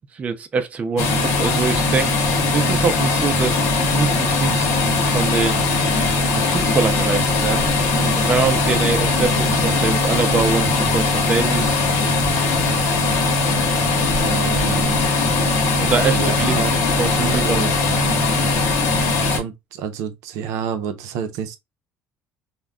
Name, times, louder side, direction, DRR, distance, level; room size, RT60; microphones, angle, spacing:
voice 1, 0.1-2.2 2.5-4.8 5.1-5.7 6.3-7.7 8.0-11.8 15.8-17.6, right 5 dB, 25° right, 0.4 m, -24 dB
sound 1, 1.0-19.4, left 3 dB, 85° left, 0.9 m, -19 dB
voice 2, 14.2-15.0 16.0-16.8 17.3-17.8 19.3-21.6, right 7 dB, 85° right, 0.5 m, -29 dB
2.2 x 2.1 x 3.5 m
cardioid pair, 155°, 5 cm